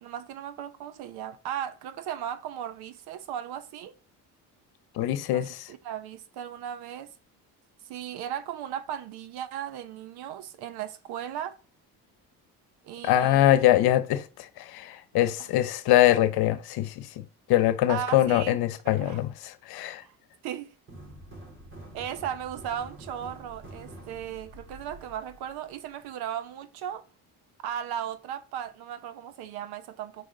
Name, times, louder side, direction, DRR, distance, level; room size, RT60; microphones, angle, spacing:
voice 1, 0.0-3.9 5.3-7.1 7.8-11.6 12.8-13.6 15.4-15.5 17.9-18.6 18.8-19.2 20.0-20.2 20.4-20.7 21.9-27.0 27.6-30.3, right 10 dB, 85° right, 1.0 m, -36 dB
voice 2, 5.0-5.6 13.0-19.3 19.7-20.0, left 13 dB, 80° left, 1.0 m, -23 dB
sound 1, 20.9-26.1, right 1 dB, 30° right, 3.4 m, -47 dB
8.3 x 4.9 x 3.9 m
cardioid pair, 135°, 37 cm